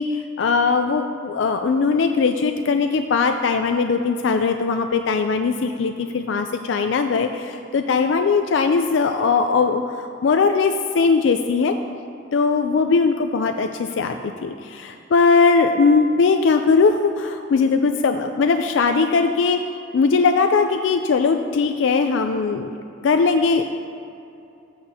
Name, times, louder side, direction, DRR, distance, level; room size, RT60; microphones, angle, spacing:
voice 1, 0.0-11.7 12.3-19.6 19.9-22.7 23.0-23.6, left 4 dB, 85° left, 6 dB, 0.4 m, -20 dB
13.5 x 8.6 x 2.8 m, 2.6 s
head